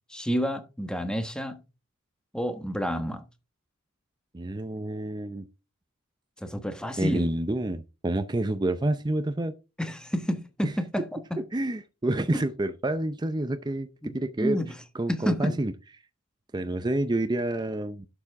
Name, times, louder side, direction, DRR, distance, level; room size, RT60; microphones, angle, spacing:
voice 1, 0.1-1.6 2.3-3.2 6.4-7.3 9.8-11.4 12.3-12.4 14.0-14.1 14.4-14.7 15.1-15.6, equal, 5° left, 1.3 m, -29 dB
voice 2, 4.3-5.5 7.0-9.5 10.6-10.7 11.4-13.9 14.1-14.6 14.9-15.7 16.5-18.1, right 1 dB, 20° right, 0.5 m, -28 dB
11.5 x 6.9 x 3.6 m
head